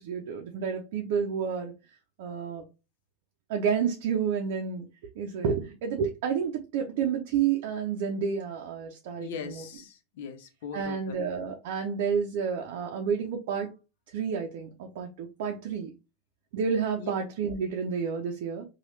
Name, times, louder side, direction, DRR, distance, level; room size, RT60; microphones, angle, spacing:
voice 1, 0.0-1.7 2.2-2.6 3.5-4.9 5.2-9.6 10.7-13.7 14.1-15.9 16.5-18.7, right 6 dB, 75° right, 0.5 m, -30 dB
voice 2, 9.2-11.2 17.0-17.1, left 6 dB, 80° left, 0.6 m, -40 dB
3.0 x 2.3 x 3.1 m
supercardioid pair, 115°, 0 cm